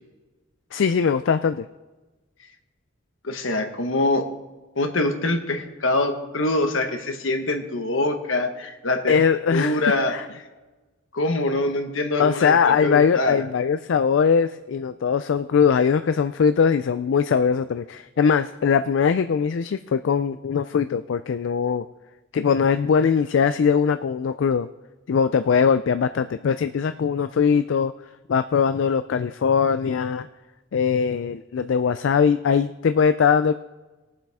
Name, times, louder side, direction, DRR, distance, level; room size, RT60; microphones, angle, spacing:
voice 1, 0.7-1.7 9.1-9.8 10.1-10.2 12.2-21.8 22.3-24.7 25.1-27.9 28.3-30.3 30.7-33.5, left 6 dB, 70° left, 10 dB, 0.4 m, -21 dB
voice 2, 3.2-4.3 4.7-9.2 9.5-10.2 11.1-13.4, left 2 dB, 85° left, 5 dB, 1.3 m, -24 dB
21.0 x 7.5 x 3.5 m, 1.2 s
head